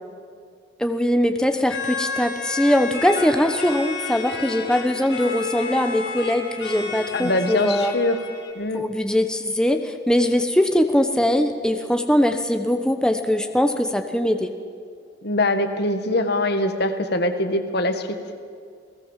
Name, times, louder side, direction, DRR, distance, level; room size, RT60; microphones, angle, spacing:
voice 1, 0.8-7.9 8.7-14.5, left 1 dB, 5° left, 6 dB, 1.1 m, -21 dB
sound 1, 1.7-8.5, left 4 dB, 85° left, 5.2 m, -32 dB
voice 2, 7.1-8.2 8.6-8.9 15.2-18.1, left 1 dB, 60° left, 8 dB, 1.9 m, -23 dB
29.0 x 18.5 x 7.5 m, 2.3 s
head